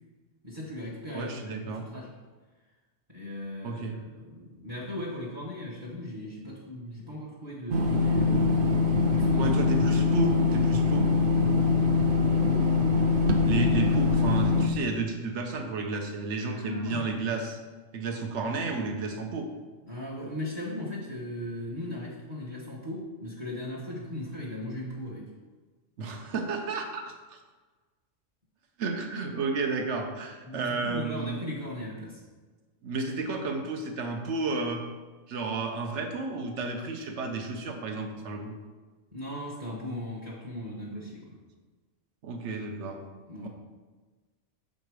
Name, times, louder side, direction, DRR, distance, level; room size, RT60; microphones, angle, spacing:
voice 1, 0.4-2.1 3.1-8.5 9.1-9.5 12.4-12.7 16.5-17.4 19.9-25.3 30.4-32.2 39.1-41.4 43.3-43.5, left 1 dB, 25° right, -7 dB, 1.0 m, -38 dB
voice 2, 1.1-1.8 3.6-4.0 9.4-11.1 13.4-17.6 17.9-19.5 26.0-27.4 28.8-31.4 32.8-34.8 35.3-38.5 42.2-43.0 43.4-43.5, right 4 dB, 75° right, 4 dB, 1.1 m, -32 dB
sound 1, 7.7-14.7, left 4 dB, 55° right, 0.7 m, -23 dB
6.6 x 3.9 x 4.7 m, 1.3 s
omnidirectional pair, 1.2 m